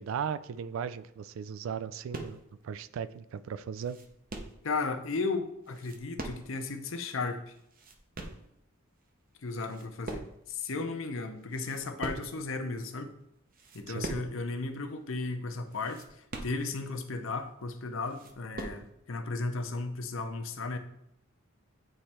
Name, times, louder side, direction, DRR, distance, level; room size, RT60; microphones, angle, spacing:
voice 1, 0.0-2.4 2.6-4.0 13.9-14.1, right 7 dB, 70° right, 0.3 m, -37 dB
sound 1, 2.1-2.6 3.1-3.2 3.5-4.7 5.6-6.7 7.0-7.1 7.5-8.5 9.1-9.3 9.6-10.6 10.9-11.0 11.4-12.5 13.0-13.1 13.5-14.4 14.7-14.8 15.1-15.2 15.7-17.0 17.5-17.6 17.9-18.9, right 2 dB, 40° right, 0.7 m, -42 dB
voice 2, 4.6-7.5 9.4-13.1 13.7-20.8, left 3 dB, 65° left, 0.7 m, -35 dB
8.8 x 3.2 x 4.3 m
head